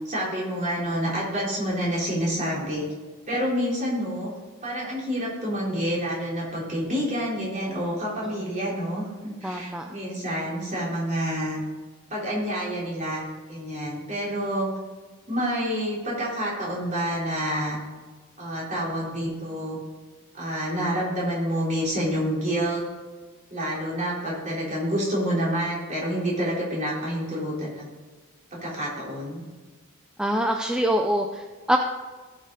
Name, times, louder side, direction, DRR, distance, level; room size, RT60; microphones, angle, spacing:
voice 1, 0.1-2.9 3.3-4.3 4.6-11.6 12.1-14.7 15.3-17.8 18.4-19.8 20.4-22.8 23.5-27.9 28.5-29.4, equal, 35° right, -5 dB, 3.8 m, -28 dB
voice 2, 9.4-9.9 30.2-31.8, equal, 5° right, 3 dB, 0.5 m, -25 dB
17.0 x 6.5 x 4.0 m, 1.4 s
head